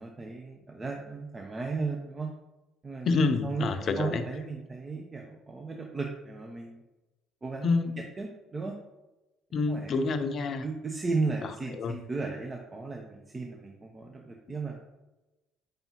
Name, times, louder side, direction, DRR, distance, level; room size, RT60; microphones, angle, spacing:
voice 1, 0.0-2.3 2.8-3.1 3.4-3.7 4.0-6.8 7.4-7.7 8.2-8.7 9.7-9.9 10.6-14.8, right 4 dB, 25° right, 1 dB, 0.9 m, -35 dB
voice 2, 3.0-4.2 7.6-8.1 9.5-10.6 11.7-11.9, left 4 dB, 50° left, 10 dB, 0.6 m, -27 dB
6.8 x 5.3 x 3.0 m, 1.0 s
hypercardioid pair, 55°, 0 cm